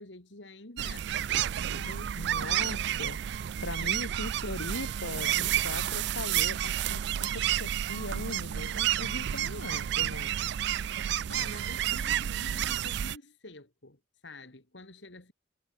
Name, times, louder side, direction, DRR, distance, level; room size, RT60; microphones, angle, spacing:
voice 1, 0.0-2.4 3.8-3.9 11.3-15.3, left 2 dB, 70° left, 2.9 m, -48 dB
sound 1, 0.8-13.2, right 11 dB, 60° right, 0.3 m, -30 dB
voice 2, 2.2-3.2 3.6-10.4, left 2 dB, 85° left, 3.1 m, -40 dB
head